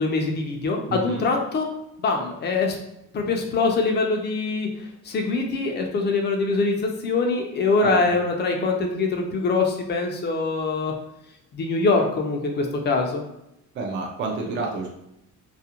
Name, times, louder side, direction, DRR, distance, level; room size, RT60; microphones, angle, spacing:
voice 1, 0.0-1.7 2.0-2.8 3.1-4.7 5.0-10.9 11.5-13.2, left 3 dB, 35° left, 2 dB, 0.4 m, -23 dB
voice 2, 0.9-1.3 7.8-8.0 13.7-14.9, right 3 dB, 40° right, -1 dB, 0.4 m, -29 dB
2.4 x 2.1 x 2.8 m, 0.83 s
cardioid pair, 165°, 31 cm